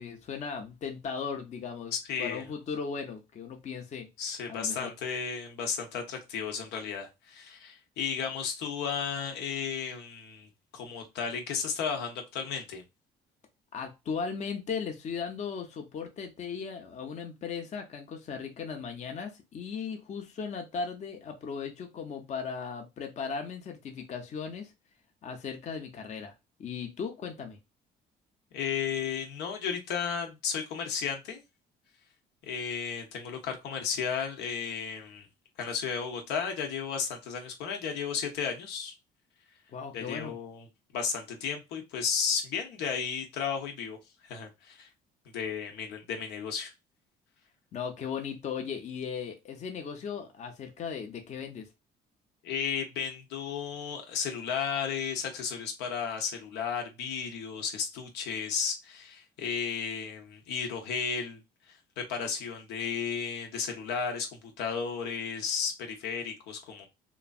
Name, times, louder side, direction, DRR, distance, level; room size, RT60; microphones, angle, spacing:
voice 1, 0.0-1.9 2.2-4.1 4.5-4.9 13.7-24.7 25.2-26.3 26.6-27.6 39.7-40.3 47.7-51.7, left 6 dB, 45° left, 0.7 m, -37 dB
voice 2, 1.9-2.4 4.2-12.8 28.5-31.4 32.4-35.3 35.6-38.9 39.9-40.7 40.9-44.0 44.2-44.9 45.3-46.7 52.4-61.4 61.7-66.9, left 6 dB, 85° left, 0.9 m, -34 dB
3.0 x 2.5 x 2.3 m
cardioid pair, 110°, 17 cm